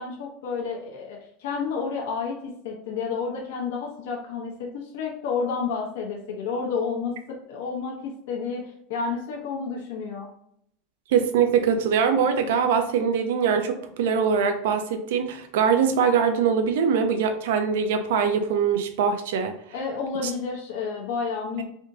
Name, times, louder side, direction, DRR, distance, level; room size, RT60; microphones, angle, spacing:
voice 1, 0.0-10.3 19.7-21.6, left 5 dB, 70° left, -1 dB, 0.9 m, -30 dB
voice 2, 11.1-19.5 20.2-20.3, right 6 dB, 80° right, 6 dB, 0.5 m, -22 dB
3.5 x 2.6 x 3.8 m, 0.71 s
supercardioid pair, 170°, 0 cm